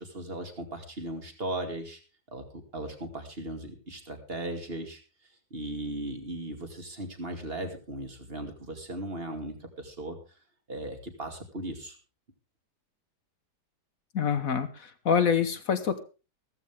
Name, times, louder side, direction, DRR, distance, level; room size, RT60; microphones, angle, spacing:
voice 1, 0.0-2.0 2.3-5.0 5.5-10.2 10.7-12.0, right 1 dB, 35° right, 5 dB, 2.6 m, -37 dB
voice 2, 14.1-16.0, left 7 dB, 60° left, 11 dB, 1.4 m, -26 dB
15.0 x 14.0 x 3.6 m, 0.33 s
omnidirectional pair, 1.8 m